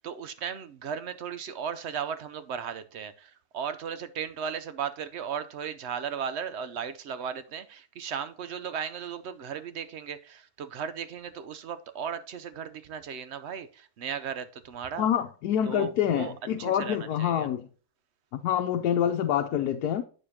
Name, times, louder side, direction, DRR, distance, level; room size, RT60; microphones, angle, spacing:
voice 1, 0.0-15.1 15.7-16.3 16.6-17.5, right 7 dB, 60° right, 0.7 m, -36 dB
voice 2, 15.0-17.7 18.3-20.0, left 10 dB, 80° left, 1.2 m, -26 dB
8.6 x 6.8 x 2.8 m
omnidirectional pair, 1.7 m